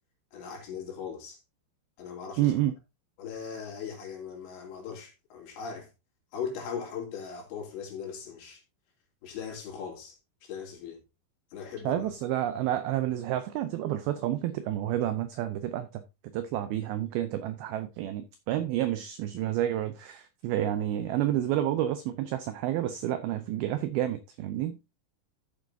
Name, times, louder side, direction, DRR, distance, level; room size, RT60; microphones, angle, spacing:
voice 1, 0.3-1.4 2.0-2.5 3.2-5.9 6.3-8.6 9.2-10.2 10.4-11.0 11.5-12.1, left 6 dB, 75° left, 4.9 m, -39 dB
voice 2, 2.4-2.7 11.8-16.0 16.3-24.8, right 12 dB, 85° right, 2.2 m, -29 dB
13.5 x 7.2 x 2.7 m
omnidirectional pair, 5.2 m